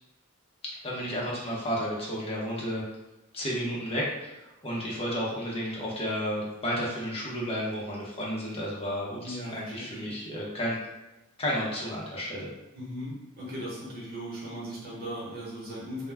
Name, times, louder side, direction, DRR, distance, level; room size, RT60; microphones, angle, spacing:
voice 1, 0.8-2.8 3.3-10.8 11.4-12.5, equal, 25° left, -5 dB, 0.6 m, -32 dB
voice 2, 9.2-10.3 12.7-16.1, equal, 45° right, -6 dB, 0.9 m, -38 dB
2.3 x 2.1 x 3.3 m, 1.0 s
head